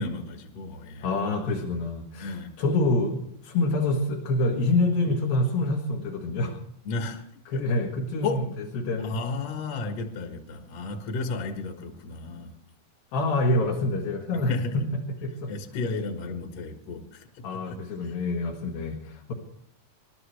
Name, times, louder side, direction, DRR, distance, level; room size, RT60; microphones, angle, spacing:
voice 1, 0.0-1.1 2.2-2.5 6.9-7.2 7.5-7.6 8.2-8.4 9.0-12.6 14.5-14.8 15.5-18.1 18.6-18.7, left 3 dB, 55° left, 4 dB, 2.1 m, -33 dB
voice 2, 1.0-6.6 7.5-9.2 13.1-14.5 15.2-15.5 17.4-19.3, left 2 dB, 80° left, 0 dB, 3.4 m, -26 dB
28.0 x 12.5 x 3.2 m, 0.75 s
omnidirectional pair, 4.1 m